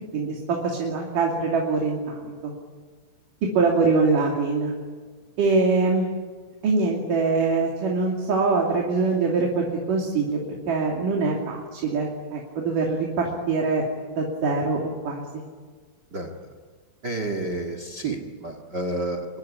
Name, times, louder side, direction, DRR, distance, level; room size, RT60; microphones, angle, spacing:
voice 1, 0.1-2.5 3.5-4.7 5.4-6.1 6.6-10.4 10.7-13.8 14.2-15.4, right 4 dB, 50° right, -1 dB, 4.1 m, -23 dB
voice 2, 17.0-19.3, right 2 dB, 80° right, 7 dB, 0.9 m, -30 dB
26.5 x 21.5 x 9.9 m, 1.5 s
omnidirectional pair, 5.4 m